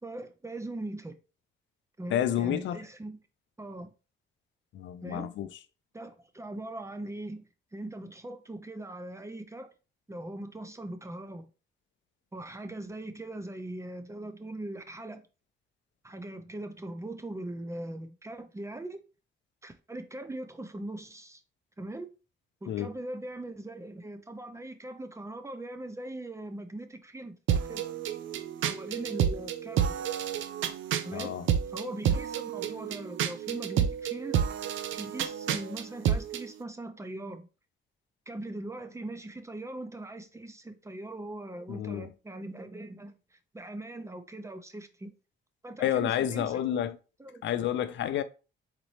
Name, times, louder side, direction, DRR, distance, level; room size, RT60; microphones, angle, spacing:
voice 1, 0.0-1.1 2.0-3.2 3.6-3.9 5.0-5.3 5.9-7.4 7.7-9.7 10.1-11.5 12.3-15.2 16.0-19.0 19.6-21.4 21.8-22.1 22.6-27.8 28.6-30.1 31.0-31.4 31.7-34.3 35.0-37.5 38.3-45.1 45.6-46.6 47.2-47.4, right 1 dB, 15° right, 0.6 m, -40 dB
voice 2, 2.1-2.8 4.7-5.5 22.7-22.9 31.1-31.4 41.7-42.1 45.8-47.0 47.4-48.2, left 10 dB, 70° left, 0.5 m, -29 dB
sound 1, 27.5-36.5, right 9 dB, 75° right, 0.5 m, -30 dB
4.1 x 4.0 x 3.2 m
cardioid pair, 90°, 20 cm